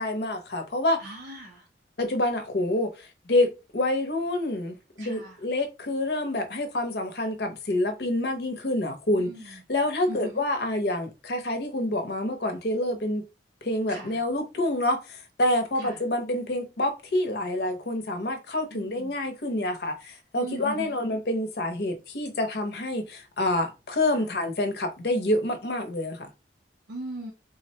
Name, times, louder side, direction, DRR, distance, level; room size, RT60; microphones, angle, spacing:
voice 1, 0.0-1.0 2.0-13.2 13.6-26.3, left 1 dB, 60° left, 0.7 m, -27 dB
voice 2, 1.0-1.6 5.0-5.3 9.2-9.4 10.1-10.4 13.9-14.1 18.7-19.1 20.4-21.0 26.9-27.3, right 1 dB, 85° right, 0.6 m, -38 dB
3.7 x 2.1 x 2.7 m
head